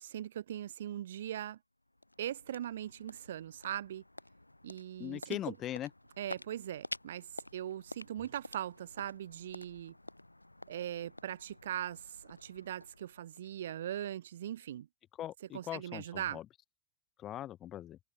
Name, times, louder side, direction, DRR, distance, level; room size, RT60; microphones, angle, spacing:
voice 1, 0.0-1.6 2.2-4.0 4.6-5.5 6.2-9.9 10.7-14.9 15.5-16.4, right 11 dB, 60° right, 2.1 m, -40 dB
sound 1, 1.5-14.0, left 1 dB, 85° left, 1.8 m, -50 dB
voice 2, 5.0-5.9 15.2-16.5 17.2-18.0, left 12 dB, 30° left, 4.0 m, -40 dB
figure-of-eight pair, 90°, 0 cm